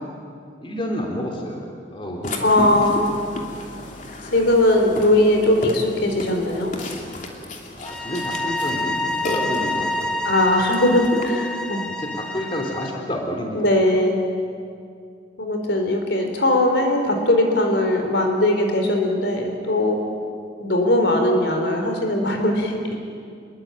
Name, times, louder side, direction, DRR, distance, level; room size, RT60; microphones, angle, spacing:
voice 1, 0.6-1.6 1.9-3.4 7.8-10.1 11.6-13.7, equal, 30° left, 1 dB, 3.5 m, -30 dB
Burping eructation, 2.2-11.3, left 1 dB, 45° left, 3.0 m, -34 dB
voice 2, 2.4-3.1 4.3-6.7 10.2-11.9 13.6-14.2 15.4-20.0 20.6-23.0, left 1 dB, 70° left, 4 dB, 4.2 m, -19 dB
sound 1, 7.8-13.0, left 2 dB, 5° left, 1.9 m, -27 dB
27.5 x 22.0 x 9.1 m, 2.3 s
head